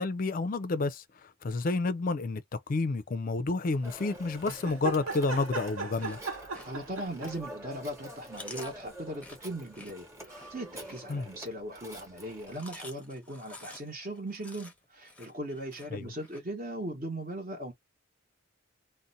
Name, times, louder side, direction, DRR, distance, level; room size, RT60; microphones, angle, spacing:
voice 1, 0.0-2.4 2.7-6.2 11.1-11.3 15.9-16.1, left 3 dB, 40° left, 0.4 m, -30 dB
Telephone, 3.8-12.9, right 1 dB, 15° right, 1.0 m, -47 dB
sound 1, 4.5-7.5 8.8-8.9, right 4 dB, 75° right, 1.1 m, -37 dB
Chewing mastication, 5.8-7.6 8.0-11.6 12.3-16.4, left 2 dB, 5° left, 0.7 m, -50 dB
voice 2, 6.6-17.7, right 1 dB, 40° right, 0.9 m, -39 dB
2.6 x 2.1 x 3.9 m
head